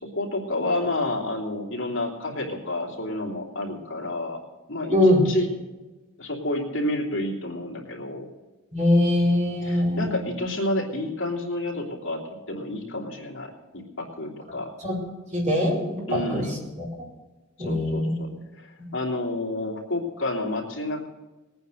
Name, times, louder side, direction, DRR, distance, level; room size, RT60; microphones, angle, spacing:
voice 1, 0.0-4.4 4.7-5.0 5.2-5.5 6.2-8.3 9.6-12.2 12.5-14.7 16.1-16.6 17.6-21.1, left 2 dB, 60° left, -1 dB, 3.0 m, -30 dB
voice 2, 4.9-5.2 8.7-10.1 14.8-15.0 15.3-16.4 17.6-18.1, left 1 dB, 35° right, -3 dB, 4.7 m, -22 dB
20.0 x 9.3 x 6.7 m, 1.2 s
head